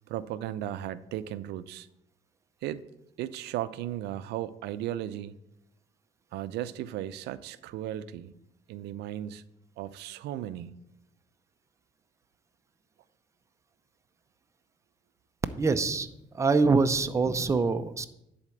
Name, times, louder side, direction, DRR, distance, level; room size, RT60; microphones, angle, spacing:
voice 1, 0.1-1.9 2.6-2.8 3.2-5.4 6.3-8.3 8.7-9.4 9.8-10.8, right 12 dB, 80° right, 14 dB, 0.5 m, -36 dB
voice 2, 15.6-16.1 16.3-18.1, right 4 dB, 15° right, 8 dB, 0.6 m, -24 dB
10.5 x 4.3 x 7.8 m, 0.85 s
cardioid pair, 110°, 17 cm